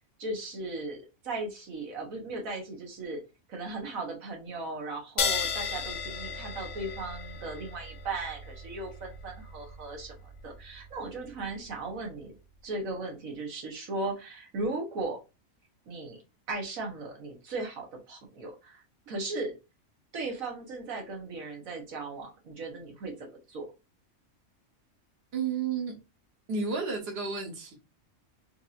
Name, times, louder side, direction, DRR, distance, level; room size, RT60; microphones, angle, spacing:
voice 1, 0.2-3.2 3.5-12.3 12.6-15.2 15.9-16.2 16.5-18.8 19.1-19.5 20.1-23.7, right 2 dB, 80° right, 1.5 m, -37 dB
sound 1, 5.2-12.2, left 6 dB, 65° left, 0.9 m, -36 dB
voice 2, 25.3-25.9 26.5-27.7, right 5 dB, 50° right, 1.3 m, -31 dB
4.5 x 2.8 x 2.5 m
omnidirectional pair, 1.4 m